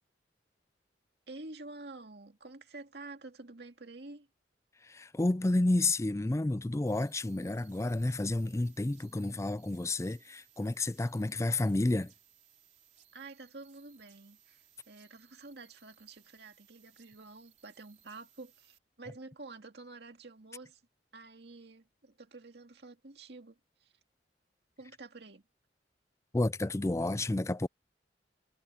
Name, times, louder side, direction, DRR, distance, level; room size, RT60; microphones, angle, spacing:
voice 1, 1.3-4.3 13.1-20.8 21.1-23.9 24.8-25.4, right 3 dB, 65° right, 2.2 m, -49 dB
voice 2, 4.9-12.1 26.3-27.7, left 2 dB, 15° left, 0.4 m, -30 dB
sound 1, 6.9-18.8, right 10 dB, 40° right, 3.5 m, -64 dB
head